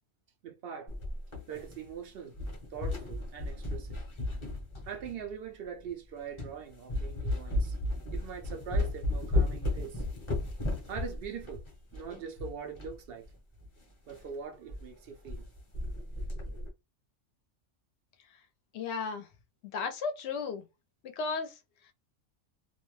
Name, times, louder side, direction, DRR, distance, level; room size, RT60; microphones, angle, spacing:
voice 1, 0.4-0.9 1.5-2.4 2.7-4.0 4.9-7.8 8.1-10.0 10.9-11.6 11.9-13.3 14.1-15.5, right 7 dB, 65° right, 0.6 m, -42 dB
sound 1, 0.9-2.0 2.3-5.3 5.9-6.0 6.4-6.6 6.9-13.0 13.2-13.3 13.6-13.7 14.1-14.3 14.7-14.8 15.1-15.4 15.7-16.7, left 2 dB, 30° left, 0.7 m, -34 dB
voice 2, 18.7-19.3 19.7-20.6 21.0-21.5, left 5 dB, 65° left, 0.8 m, -34 dB
2.4 x 2.1 x 3.1 m
omnidirectional pair, 1.3 m